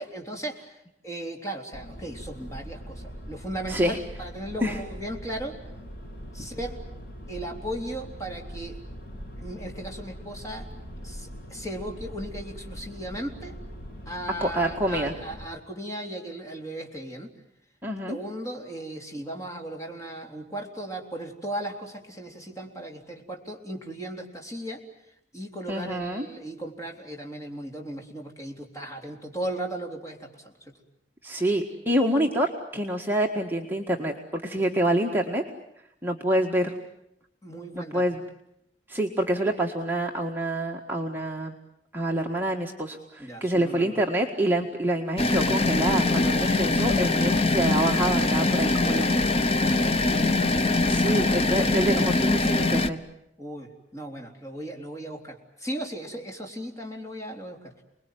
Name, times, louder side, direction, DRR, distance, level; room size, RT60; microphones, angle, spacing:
voice 1, 0.0-5.6 6.3-6.8 7.3-8.8 9.4-10.7 11.0-13.6 14.1-17.3 18.1-24.8 25.3-30.8 37.4-38.0 43.2-43.9 46.6-47.0 49.6-50.4 51.0-51.3 53.4-57.8, right 1 dB, 20° left, 1 dB, 3.8 m, -37 dB
sound 1, 1.7-15.5, equal, 60° left, 7.7 m, -41 dB
voice 2, 14.4-15.1 17.8-18.2 25.7-26.3 31.2-35.4 36.0-36.7 37.7-38.2 38.9-41.5 41.9-49.2 50.9-53.0, right 1 dB, 10° right, 0 dB, 1.8 m, -27 dB
sound 2, 45.2-52.9, left 2 dB, 35° left, 1.2 m, -23 dB
29.5 x 21.0 x 9.4 m, 0.81 s
head